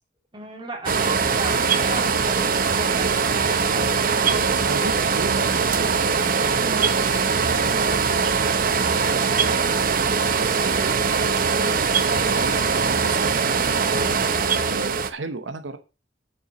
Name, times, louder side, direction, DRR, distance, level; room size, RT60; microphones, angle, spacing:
voice 1, 0.3-1.5 1.8-3.8, right 2 dB, 25° right, 1 dB, 2.7 m, -35 dB
sound 1, 0.9-15.1, right 5 dB, 50° right, 0.8 m, -21 dB
voice 2, 1.7-2.2 4.3-9.3 10.1-15.8, right 3 dB, 85° right, 8 dB, 0.9 m, -35 dB
7.1 x 6.9 x 6.1 m, 0.31 s
head